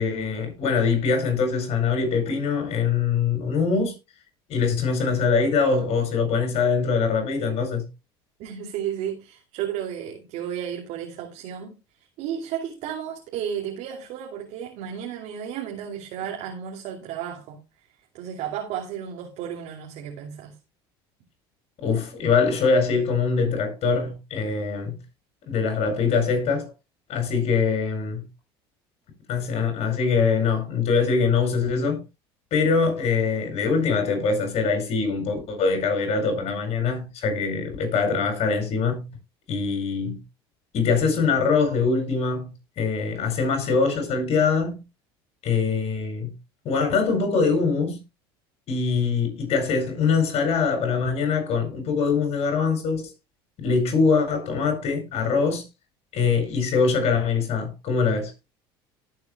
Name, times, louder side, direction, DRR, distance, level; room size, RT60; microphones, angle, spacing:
voice 1, 0.0-3.9 4.5-7.9 21.8-25.0 25.5-26.7 27.1-28.2 29.3-32.0 32.5-39.1 39.5-40.2 40.7-42.5 42.8-44.8 45.4-46.3 46.6-48.0 48.7-53.1 53.6-55.7 56.1-58.3, left 5 dB, 55° left, 7.7 m, -23 dB
voice 2, 8.4-11.8 12.2-17.6 18.1-20.6, right 9 dB, 65° right, 2.7 m, -33 dB
18.5 x 8.6 x 2.3 m
hypercardioid pair, 80°, 13 cm